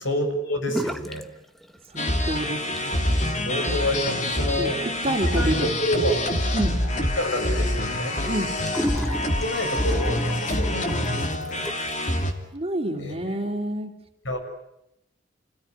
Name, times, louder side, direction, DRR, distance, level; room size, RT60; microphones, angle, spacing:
voice 1, 0.0-1.3 3.5-4.8 5.3-6.2 7.0-8.2 9.4-11.7 13.0-13.2 14.2-14.4, left 1 dB, 80° left, 5 dB, 7.0 m, -28 dB
sound 1, 0.7-1.3 1.5-2.2 2.6-12.0, equal, ahead, 1.0 m, -36 dB
voice 2, 1.9-3.3 4.6-4.7 5.0-5.7 6.5-6.7 8.3-8.5 12.5-13.9, right 1 dB, 30° right, 3 dB, 2.9 m, -28 dB
sound 2, 2.0-12.3, left 1 dB, 40° left, 2.7 m, -26 dB
29.0 x 17.0 x 9.7 m, 0.84 s
head